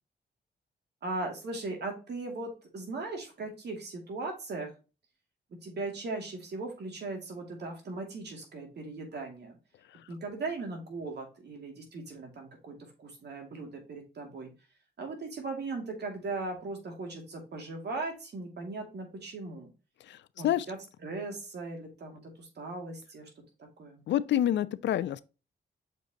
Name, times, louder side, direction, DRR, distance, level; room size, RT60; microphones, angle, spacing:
voice 1, 1.0-4.7 5.6-9.5 10.1-14.5 15.0-19.7 20.4-23.3 23.6-24.1, right 3 dB, 70° right, 2.4 m, -38 dB
voice 2, 24.1-25.2, left 11 dB, 80° left, 0.4 m, -27 dB
6.5 x 5.1 x 2.9 m
cardioid pair, 65°, 18 cm